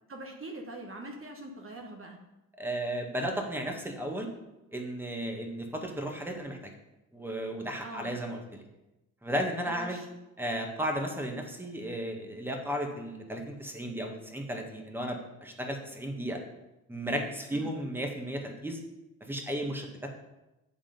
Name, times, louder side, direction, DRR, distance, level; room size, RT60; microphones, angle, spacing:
voice 1, 0.1-2.2 7.8-8.1 9.7-10.1 17.5-17.7, right 2 dB, 30° right, 1 dB, 1.4 m, -43 dB
voice 2, 2.6-4.3 4.7-6.7 7.1-8.6 9.2-10.0 10.4-16.4 16.9-18.8 19.2-20.1, equal, 5° right, 3 dB, 1.6 m, -34 dB
10.0 x 3.7 x 5.3 m, 0.98 s
hypercardioid pair, 50°, 43 cm